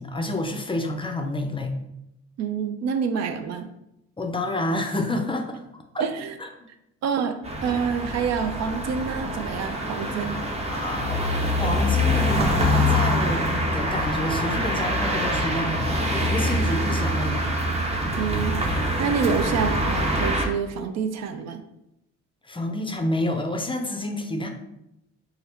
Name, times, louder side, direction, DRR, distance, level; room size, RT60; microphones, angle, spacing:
voice 1, 0.0-1.7 4.2-5.6 5.9-6.1 6.4-6.5 10.7-17.5 22.4-24.5, left 1 dB, 15° left, 4 dB, 0.4 m, -29 dB
voice 2, 2.4-3.7 6.0-6.4 7.0-10.4 18.2-21.6, right 6 dB, 60° right, 7 dB, 0.5 m, -27 dB
sound 1, 7.4-20.5, equal, 20° right, 0.7 m, -24 dB
2.7 x 2.4 x 3.4 m, 0.84 s
supercardioid pair, 65°, 30 cm